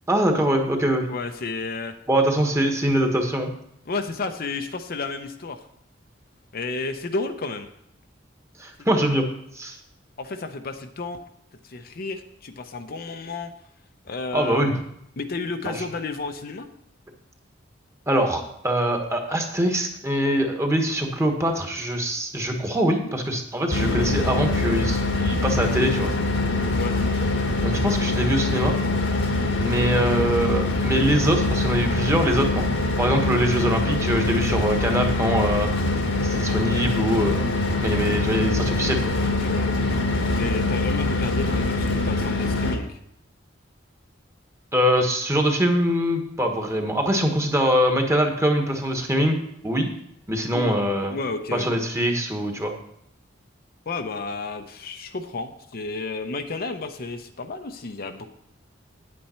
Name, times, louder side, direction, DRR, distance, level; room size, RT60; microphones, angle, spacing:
voice 1, 0.1-1.1 2.1-3.5 8.6-9.3 9.5-9.8 14.3-14.7 15.6-15.9 18.1-26.1 27.6-28.8 29.6-32.7 33.0-35.7 36.2-37.5 37.8-39.1 44.7-49.4 49.6-49.9 50.3-51.2 51.5-52.7, equal, 15° right, 3 dB, 1.3 m, -23 dB
voice 2, 1.1-2.0 3.9-5.7 6.5-7.7 8.9-9.4 10.2-11.2 11.6-13.5 14.0-14.7 15.2-16.7 26.8-27.0 39.4-39.7 40.4-43.0 50.5-51.7 53.9-58.3, left 3 dB, 50° left, 7 dB, 0.7 m, -32 dB
sound 1, 23.7-42.8, left 2 dB, 80° left, 1.6 m, -24 dB
9.3 x 8.7 x 4.3 m, 0.73 s
head